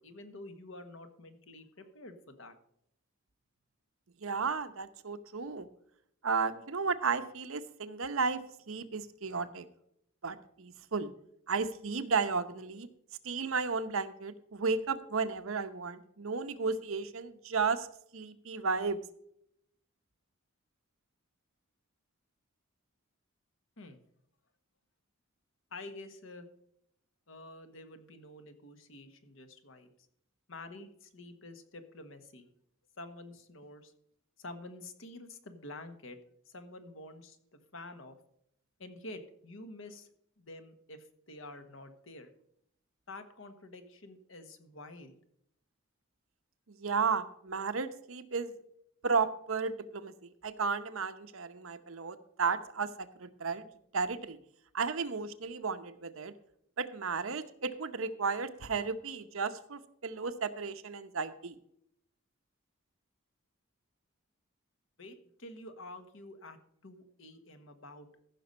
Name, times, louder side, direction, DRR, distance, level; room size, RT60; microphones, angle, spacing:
voice 1, 0.0-2.6 23.8-24.0 25.7-26.5 27.3-29.9 30.5-32.5 33.0-33.9 34.4-36.2 36.5-38.2 38.8-40.1 40.4-42.3 43.1-45.2 65.0-68.3, left 2 dB, 65° left, 8 dB, 1.4 m, -48 dB
voice 2, 4.2-5.7 6.2-8.4 8.7-9.7 10.2-11.1 11.5-12.9 13.2-17.9 18.1-19.0 46.7-48.5 49.0-52.9 53.2-53.6 53.9-54.4 54.7-56.3 56.8-61.6, right 5 dB, 70° right, 10 dB, 0.9 m, -33 dB
15.0 x 6.0 x 5.4 m, 0.72 s
head